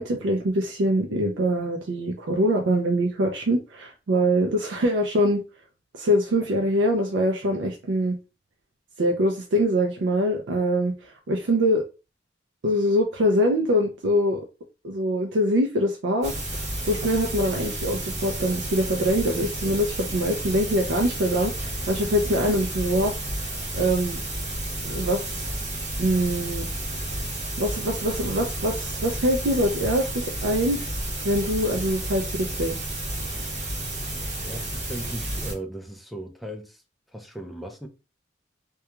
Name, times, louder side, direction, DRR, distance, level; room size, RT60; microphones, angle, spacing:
voice 1, 0.0-5.4 5.9-8.2 9.0-11.8 12.6-14.4 14.8-16.3 16.9-23.2 23.7-24.2 24.8-25.5 26.0-26.7 27.6-30.8 31.2-32.8, equal, 80° right, 0.4 m, -24 dB
sound 1, 16.2-35.5, right 1 dB, 40° right, 0.9 m, -31 dB
voice 2, 34.2-36.8 37.1-37.9, right 1 dB, ahead, 0.3 m, -37 dB
2.3 x 2.2 x 2.9 m
head